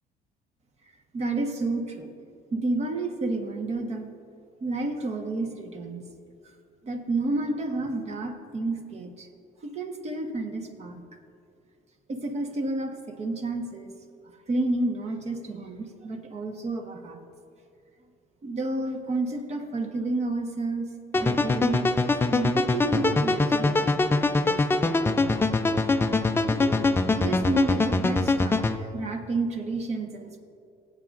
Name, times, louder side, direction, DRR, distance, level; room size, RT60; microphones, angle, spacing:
voice 1, 1.1-2.1 2.5-4.1 4.6-6.0 6.8-9.3 9.6-11.0 12.1-13.9 14.5-17.2 18.4-20.9 21.2-25.4 26.5-26.8 27.1-30.4, right 2 dB, 40° right, 4 dB, 1.3 m, -31 dB
sound 1, 21.1-28.8, left 3 dB, 15° left, 0.4 m, -23 dB
19.0 x 8.5 x 2.5 m, 2.5 s
cardioid pair, 110°, 17 cm